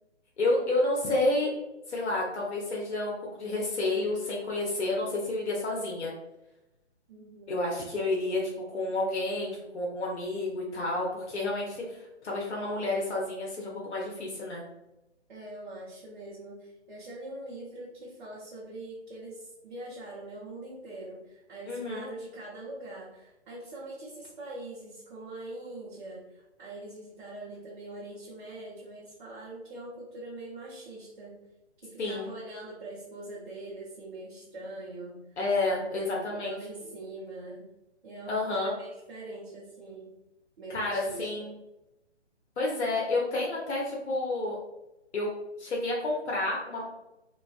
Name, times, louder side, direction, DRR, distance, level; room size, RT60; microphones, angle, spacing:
voice 1, 0.4-1.5 1.9-6.1 7.5-8.4 8.7-14.6 21.7-22.1 32.0-32.3 35.4-36.6 38.3-38.7 40.7-41.5 42.6-44.6 45.1-46.9, left 2 dB, 70° left, -3 dB, 0.7 m, -30 dB
voice 2, 7.1-7.6 15.3-31.3 31.8-35.2 35.8-37.7 38.0-40.1 40.6-41.3, right 2 dB, 45° right, -7 dB, 0.7 m, -43 dB
2.3 x 2.2 x 2.3 m, 0.93 s
hypercardioid pair, 155°, 35 cm